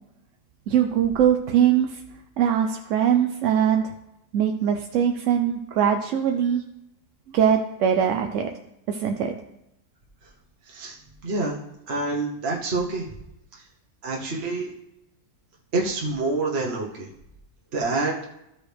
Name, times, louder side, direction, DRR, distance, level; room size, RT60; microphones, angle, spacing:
voice 1, 0.7-2.0 2.4-3.9 4.3-6.6 7.3-8.5 8.9-9.3, right 9 dB, 65° right, 4 dB, 0.9 m, -21 dB
voice 2, 11.2-11.6 11.9-13.0 13.5-13.6 14.0-14.7 15.7-17.1 17.7-18.2, right 3 dB, 45° right, -2 dB, 1.2 m, -27 dB
14.0 x 4.8 x 3.3 m, 0.85 s
omnidirectional pair, 1.6 m